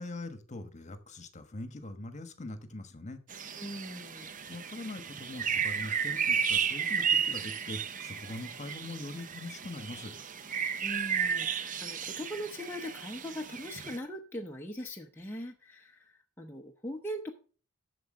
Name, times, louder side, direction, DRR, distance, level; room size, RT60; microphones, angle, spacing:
voice 1, 0.0-3.2 4.5-10.1, left 2 dB, 35° left, 9 dB, 1.3 m, -42 dB
sound 1, 3.3-14.0, right 7 dB, 40° right, 0.6 m, -33 dB
voice 2, 3.6-4.3 10.8-17.3, equal, 10° left, 0 dB, 0.8 m, -41 dB
8.0 x 6.9 x 6.5 m, 0.40 s
head